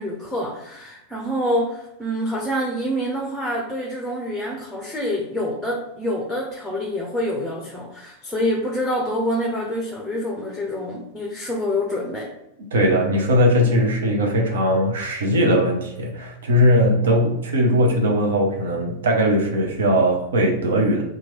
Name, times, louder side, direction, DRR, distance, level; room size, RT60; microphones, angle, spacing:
voice 1, 0.0-12.3, equal, 5° left, -1 dB, 0.6 m, -26 dB
voice 2, 12.7-21.0, equal, 65° right, 1 dB, 0.6 m, -19 dB
2.9 x 2.3 x 3.1 m, 0.83 s
figure-of-eight pair, 90°, 0 cm